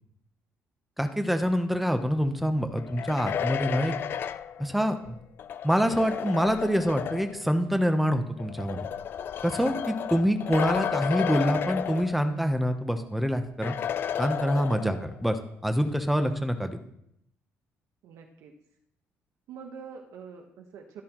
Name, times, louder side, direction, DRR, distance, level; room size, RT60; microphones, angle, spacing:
voice 1, 1.0-4.0 4.6-5.2 5.6-8.8 9.4-13.7 14.2-15.4 15.6-16.8, equal, ahead, 7 dB, 0.8 m, -26 dB
sound 1, 2.8-7.5 8.4-12.6 12.9-13.0 13.6-15.2, left 9 dB, 45° left, 0.4 m, -33 dB
voice 2, 14.8-15.2 18.0-18.5 19.5-21.0, right 6 dB, 75° right, 2 dB, 1.2 m, -44 dB
12.5 x 12.5 x 3.0 m, 0.75 s
cardioid pair, 165°, 5 cm